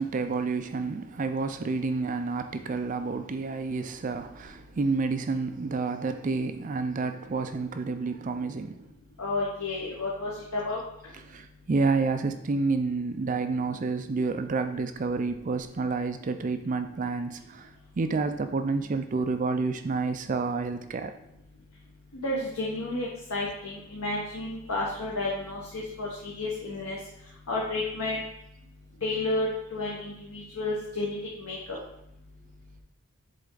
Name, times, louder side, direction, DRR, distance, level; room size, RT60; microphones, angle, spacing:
voice 1, 0.0-8.9 11.1-21.1, right 4 dB, 35° right, 0.3 m, -29 dB
voice 2, 9.2-10.8 22.2-27.0 27.5-28.2 29.0-31.6, left 2 dB, 80° left, 1.1 m, -31 dB
7.5 x 3.4 x 3.8 m
head